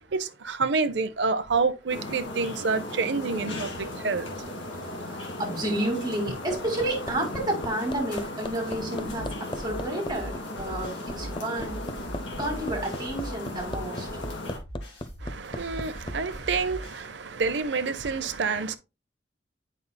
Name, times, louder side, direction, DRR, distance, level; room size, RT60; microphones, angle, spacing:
voice 1, 0.1-4.3 15.2-18.8, right 4 dB, 70° right, 0.6 m, -28 dB
sound 1, 1.9-14.6, left 1 dB, 90° left, 1.8 m, -36 dB
voice 2, 5.1-11.8 12.4-14.1, right 1 dB, 20° right, 2.3 m, -31 dB
Hammer, 6.5-16.2 17.5-17.6, left 1 dB, 25° left, 0.5 m, -37 dB
sound 2, 9.1-17.1, equal, 65° left, 3.2 m, -40 dB
8.1 x 5.5 x 2.2 m
head